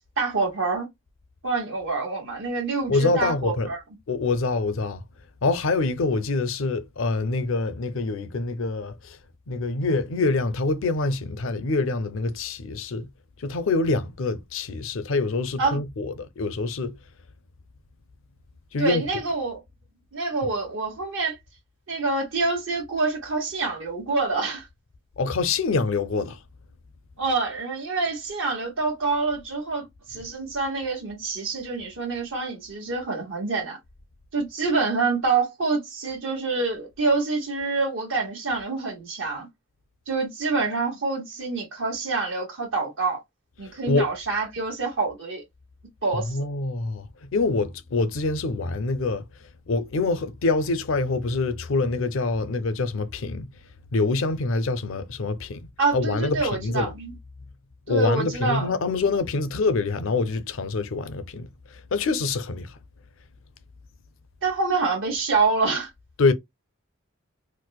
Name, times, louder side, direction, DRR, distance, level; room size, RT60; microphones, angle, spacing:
voice 1, 0.2-0.9 1.4-3.8 15.6-15.8 18.8-19.6 20.1-21.4 21.9-24.7 27.2-33.8 34.3-39.5 40.1-43.2 43.6-45.4 46.0-46.4 55.8-57.1 57.9-58.7 64.4-65.9, right 4 dB, 65° right, 1.2 m, -26 dB
voice 2, 2.9-3.7 4.1-5.0 5.4-9.2 9.5-13.1 13.4-17.0 18.7-19.0 25.2-26.4 43.7-44.1 46.1-49.2 49.7-53.5 53.9-55.7 55.9-56.9 57.9-62.8 66.2-66.3, left 3 dB, 65° left, 0.5 m, -25 dB
4.5 x 2.1 x 2.2 m
head